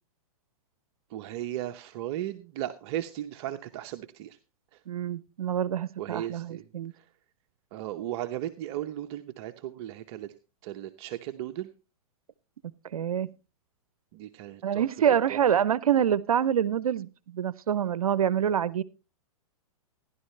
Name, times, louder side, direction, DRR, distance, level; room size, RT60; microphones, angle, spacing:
voice 1, 1.1-4.4 6.0-6.6 6.9-7.0 7.7-10.3 10.6-11.7 14.1-14.8 15.3-15.4, right 13 dB, 50° right, 7 dB, 0.9 m, -36 dB
voice 2, 4.9-6.9 12.9-13.3 14.6-18.8, right 9 dB, 90° right, 20 dB, 0.7 m, -26 dB
15.0 x 11.5 x 3.2 m, 0.31 s
hypercardioid pair, 125°, 18 cm